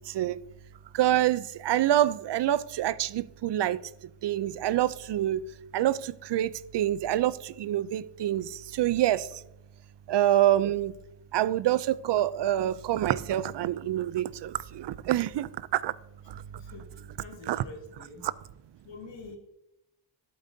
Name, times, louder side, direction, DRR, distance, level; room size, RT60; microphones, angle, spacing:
voice 1, 0.1-0.4 0.9-3.8 4.2-5.5 5.7-9.3 10.1-10.9 11.3-15.9 16.3-16.4 17.5-17.6, right 12 dB, 70° right, 0.5 m, -26 dB
voice 2, 16.5-16.9 17.2-18.2 18.8-19.4, left 3 dB, 90° left, 2.2 m, -46 dB
11.5 x 7.9 x 2.7 m
wide cardioid pair, 115°, 43 cm